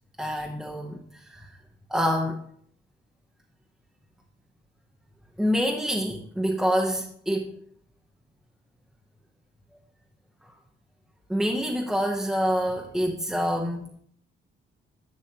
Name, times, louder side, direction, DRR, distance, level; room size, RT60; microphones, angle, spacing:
voice 1, 0.2-1.5 1.9-2.4 5.4-7.5 11.3-13.9, equal, ahead, 0 dB, 0.9 m, -26 dB
10.5 x 6.3 x 2.9 m, 0.63 s
cardioid pair, 90°, 20 cm